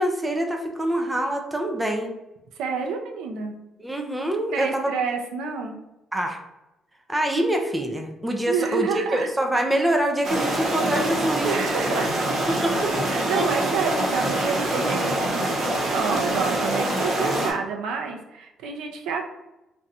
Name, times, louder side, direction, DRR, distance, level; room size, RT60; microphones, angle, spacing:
voice 1, 0.0-2.1 3.8-4.9 6.1-6.4 7.1-11.5 12.5-12.9 13.3-13.5, right 1 dB, 5° right, 2 dB, 0.3 m, -25 dB
voice 2, 2.6-3.5 4.5-5.8 8.5-9.3 11.4-12.1 13.1-19.3, right 5 dB, 90° right, 2 dB, 0.5 m, -28 dB
sound 1, 10.2-17.5, right 1 dB, 45° right, 0.7 m, -25 dB
2.6 x 2.2 x 4.0 m, 0.95 s
cardioid pair, 160°, 0 cm